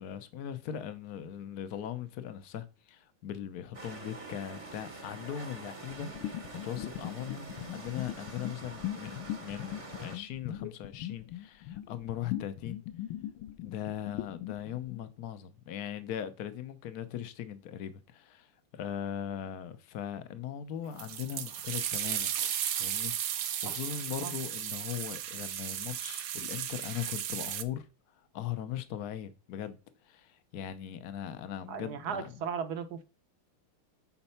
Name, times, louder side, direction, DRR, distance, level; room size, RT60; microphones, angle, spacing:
voice 1, 0.0-12.8 13.6-22.3 22.8-27.9 28.3-29.8 30.0-32.4, left 10 dB, 60° left, 1.1 m, -39 dB
sound 1, 3.7-10.2, right 3 dB, 25° right, 0.8 m, -46 dB
sound 2, 6.0-15.1, left 12 dB, 80° left, 1.5 m, -40 dB
sound 3, 21.0-27.6, right 10 dB, 85° right, 0.7 m, -35 dB
voice 2, 31.7-33.0, right 7 dB, 55° right, 1.2 m, -36 dB
8.9 x 4.1 x 5.6 m
omnidirectional pair, 2.3 m